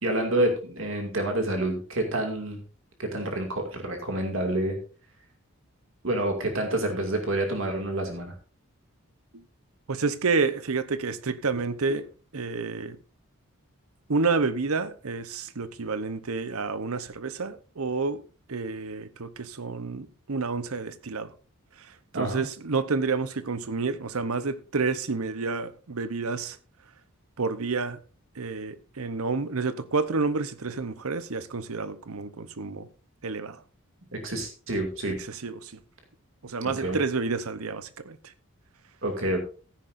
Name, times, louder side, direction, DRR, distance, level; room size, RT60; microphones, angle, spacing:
voice 1, 0.0-2.6 3.0-4.8 6.0-8.3 22.1-22.4 34.1-35.2 36.8-37.0 39.0-39.4, right 1 dB, 60° right, 2.3 m, -28 dB
voice 2, 9.9-13.0 14.1-18.2 18.5-21.3 21.8-21.9 22.1-26.6 27.4-28.0 28.4-32.9 33.2-33.6 35.3-35.8 36.4-38.2, right 4 dB, 75° right, 0.8 m, -29 dB
14.5 x 10.0 x 2.6 m
head